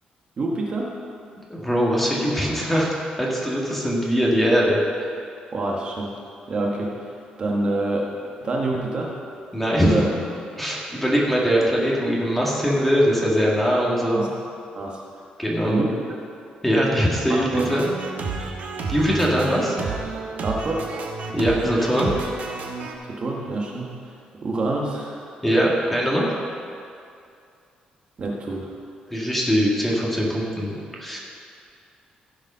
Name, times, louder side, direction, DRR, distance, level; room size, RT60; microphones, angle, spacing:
voice 1, 0.4-1.0 5.5-6.1 6.5-7.1 7.4-8.1 8.4-9.1 9.8-10.1 14.0-14.3 14.7-15.0 15.6-15.9 17.5-17.7 20.4-20.9 23.1-25.3 28.2-28.7, right 2 dB, 40° right, -2 dB, 1.3 m, -26 dB
voice 2, 1.5-5.1 9.5-10.0 10.6-14.3 15.4-15.8 16.6-17.9 18.9-19.8 21.3-22.1 25.4-26.4 29.1-31.2, equal, 5° left, -4 dB, 1.9 m, -21 dB
sound 1, 17.5-22.9, right 4 dB, 65° right, 1.3 m, -31 dB
15.5 x 5.2 x 5.6 m, 2.4 s
cardioid pair, 130°, 3 cm